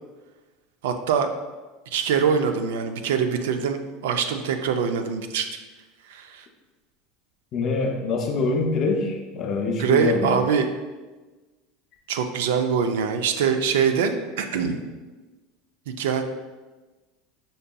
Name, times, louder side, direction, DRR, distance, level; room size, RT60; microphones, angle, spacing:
voice 1, 0.8-1.3 1.9-5.5 6.1-6.5 9.8-10.7 12.1-14.8 16.0-16.2, right 6 dB, 90° right, 7 dB, 0.3 m, -23 dB
voice 2, 7.5-10.4, left 3 dB, 40° left, 3 dB, 0.5 m, -25 dB
5.1 x 2.7 x 2.2 m, 1.2 s
supercardioid pair, 145°, 0 cm